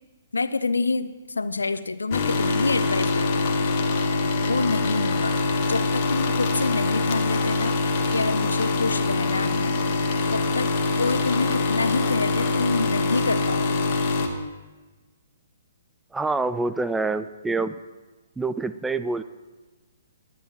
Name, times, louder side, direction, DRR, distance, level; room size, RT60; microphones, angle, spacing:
voice 1, 0.3-3.4 4.4-5.4 5.7-9.7 10.3-10.7 11.0-13.9, left 3 dB, 75° left, 14 dB, 0.7 m, -27 dB
Coffee Machine Motor, 2.1-14.3, left 3 dB, 40° left, 1.7 m, -24 dB
voice 2, 16.1-17.8 18.4-19.2, right 3 dB, 5° right, 12 dB, 0.5 m, -26 dB
19.0 x 11.5 x 4.5 m, 1.2 s
figure-of-eight pair, 125°, 0 cm